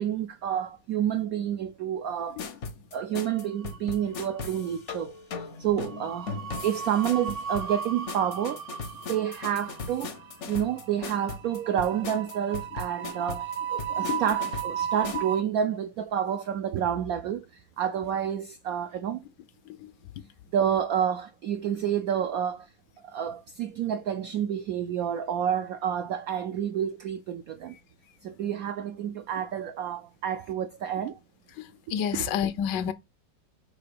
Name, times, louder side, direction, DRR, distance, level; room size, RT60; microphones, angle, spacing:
voice 1, 0.0-2.4 2.9-6.3 6.6-8.6 9.1-10.1 10.5-19.2 20.5-22.7 23.0-27.8 28.2-31.2 32.2-32.3, right 9 dB, 80° right, 0.8 m, -29 dB
sound 1, 2.4-15.3, left 5 dB, 55° left, 0.8 m, -39 dB
sound 2, 3.4-4.1 4.4-4.7 5.9-15.4, right 8 dB, 55° right, 0.9 m, -35 dB
voice 2, 31.6-32.9, left 8 dB, 75° left, 1.1 m, -29 dB
4.8 x 4.6 x 5.2 m
omnidirectional pair, 2.0 m